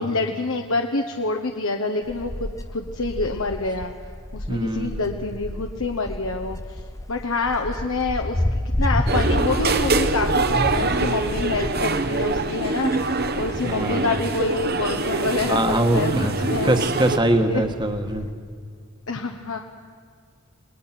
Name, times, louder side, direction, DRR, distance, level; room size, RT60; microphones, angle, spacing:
voice 1, 0.0-3.9 4.3-6.8 7.1-16.7 17.2-17.6 19.1-19.6, left 3 dB, 70° left, 3 dB, 1.1 m, -27 dB
Wind, 2.0-18.3, left 1 dB, 15° left, 0.6 m, -31 dB
voice 2, 4.5-5.0 13.6-14.1 15.4-16.3 16.6-18.3, right 1 dB, 20° right, 6 dB, 1.4 m, -22 dB
sound 1, 9.1-17.2, right 3 dB, 45° right, 1.1 m, -24 dB
28.5 x 20.0 x 5.9 m, 2.1 s
head